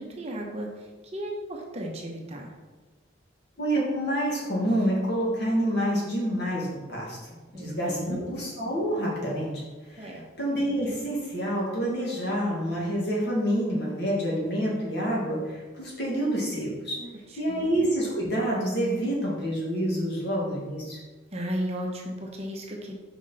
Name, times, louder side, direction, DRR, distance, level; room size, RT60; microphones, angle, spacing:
voice 1, 0.0-2.5 7.5-8.2 10.0-10.3 17.0-17.6 21.3-22.9, equal, 30° right, 0 dB, 0.9 m, -35 dB
voice 2, 3.6-7.2 7.5-10.1 10.4-17.0 17.4-21.0, equal, 55° left, -4 dB, 2.0 m, -28 dB
5.8 x 5.2 x 4.2 m, 1.3 s
head